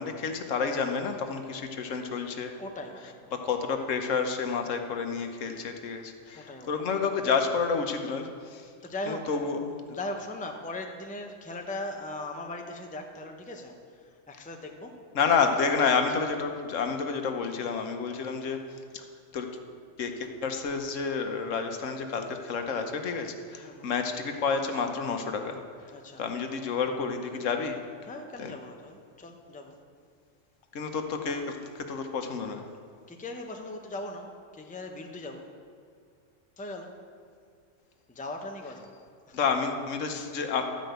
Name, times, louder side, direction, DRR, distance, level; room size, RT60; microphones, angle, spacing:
voice 1, 0.0-2.6 3.4-8.6 9.1-9.7 15.1-18.6 18.9-19.0 19.3-19.5 20.0-25.6 26.2-27.8 28.4-28.5 30.7-32.6 39.3-40.7, left 5 dB, 80° left, 5 dB, 1.2 m, -29 dB
voice 2, 2.5-3.7 6.4-6.9 8.6-9.5 9.9-15.0 15.7-16.0 23.6-23.9 25.9-26.2 28.0-29.8 33.1-35.5 36.6-37.0 38.1-38.9 39.3-39.4, left 2 dB, 10° left, 3 dB, 0.6 m, -39 dB
12.0 x 5.2 x 7.9 m, 2.2 s
omnidirectional pair, 1.3 m